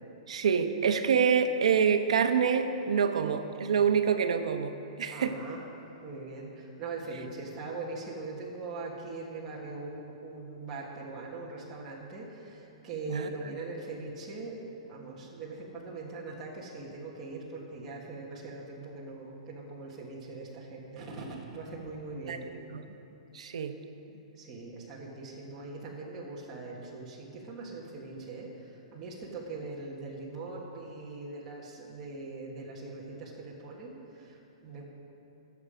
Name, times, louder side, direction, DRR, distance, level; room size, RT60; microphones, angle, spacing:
voice 1, 0.3-5.4 13.1-13.3 22.3-22.4 22.7-22.8 23.3-23.7, right 7 dB, 90° right, 8 dB, 1.0 m, -26 dB
voice 2, 5.1-5.6 6.0-22.5 24.3-34.8, right 3 dB, 15° right, -5 dB, 1.4 m, -41 dB
21.5 x 7.2 x 5.1 m, 2.9 s
hypercardioid pair, 175°, 3 cm